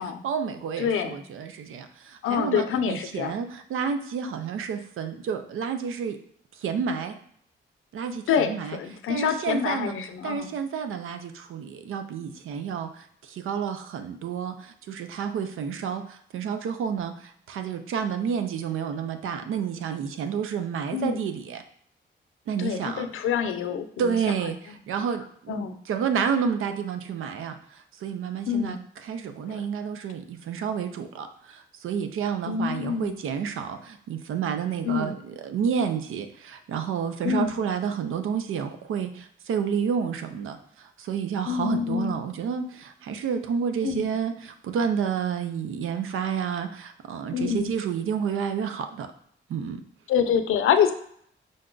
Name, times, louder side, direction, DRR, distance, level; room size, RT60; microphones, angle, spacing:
voice 1, 0.0-6.2 6.6-7.2 7.9-8.8 9.1-9.9 10.2-21.6 22.5-23.1 24.0-49.1 49.5-49.8, right 7 dB, 90° right, 8 dB, 0.5 m, -30 dB
voice 2, 0.8-1.2 2.2-3.4 8.3-10.5 20.9-21.2 22.6-24.2 25.5-25.8 28.5-28.8 29.5-29.6 32.5-33.2 34.8-35.1 37.2-37.5 41.5-42.1 43.8-44.1 47.3-47.7 50.1-50.9, left 7 dB, 90° left, 8 dB, 0.5 m, -26 dB
5.2 x 2.2 x 3.8 m, 0.64 s
cardioid pair, 95°, 21 cm